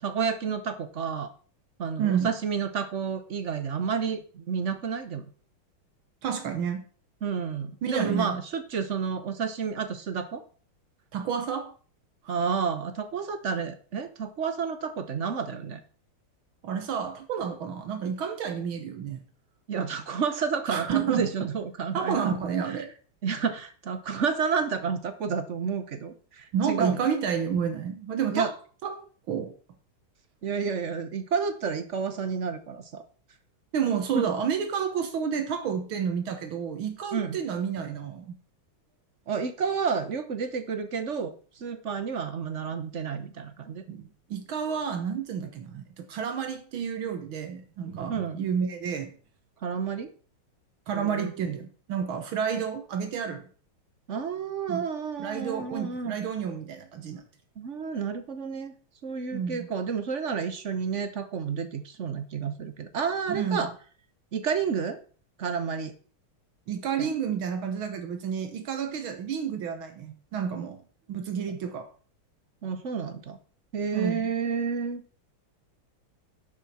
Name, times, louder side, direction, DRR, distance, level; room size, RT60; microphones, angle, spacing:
voice 1, 0.0-1.3 1.8-5.2 7.2-10.4 12.3-15.8 19.7-22.4 23.2-27.0 28.3-28.5 30.4-33.0 34.1-34.2 37.1-37.4 39.3-43.8 48.1-48.4 49.6-50.1 50.9-51.3 54.1-56.1 57.6-58.7 59.0-63.7 64.3-65.0 65.4-65.9 67.0-67.1 71.5-71.6 72.6-73.4 73.7-75.0, right 6 dB, 50° right, 0.9 m, -30 dB
voice 2, 2.0-2.3 6.2-6.8 7.8-8.4 11.1-11.7 12.2-12.4 16.6-19.2 20.7-21.3 21.9-22.9 26.5-28.5 28.8-29.5 33.7-38.3 43.9-49.1 50.9-53.5 54.7-54.8 55.2-57.2 59.3-59.7 63.3-63.7 66.7-70.8 71.1-71.9 73.9-74.3, right 7 dB, 75° right, 1.9 m, -30 dB
10.5 x 7.8 x 4.2 m
omnidirectional pair, 2.3 m